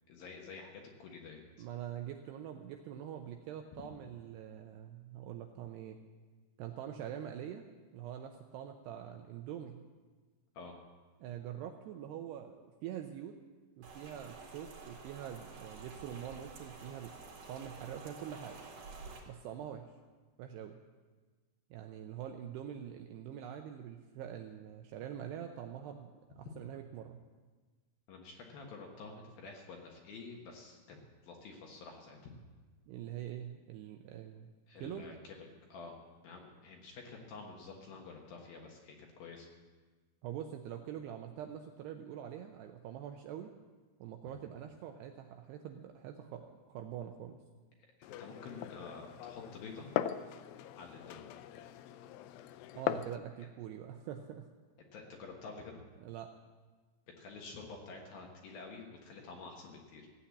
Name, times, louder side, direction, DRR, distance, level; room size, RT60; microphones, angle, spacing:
voice 1, 0.1-1.7 10.5-10.7 28.1-31.0 31.2-32.3 34.7-36.0 36.2-39.5 48.0-49.9 50.7-51.2 54.9-55.8 57.2-60.1, left 4 dB, 65° left, 1 dB, 2.7 m, -49 dB
voice 2, 1.6-6.0 6.6-7.6 7.9-9.9 11.2-13.4 13.8-17.1 17.5-18.6 19.3-19.9 20.4-20.8 21.7-27.2 32.9-34.5 34.8-35.1 40.2-43.5 44.0-47.4 52.7-54.5 56.0-56.3, right 10 dB, 80° right, 5 dB, 2.5 m, -44 dB
Rain, 13.8-19.2, right 4 dB, 45° right, 3.6 m, -50 dB
Glass, 48.0-53.2, left 12 dB, 85° left, 2.3 m, -40 dB
16.0 x 8.8 x 8.4 m, 1.4 s
omnidirectional pair, 5.5 m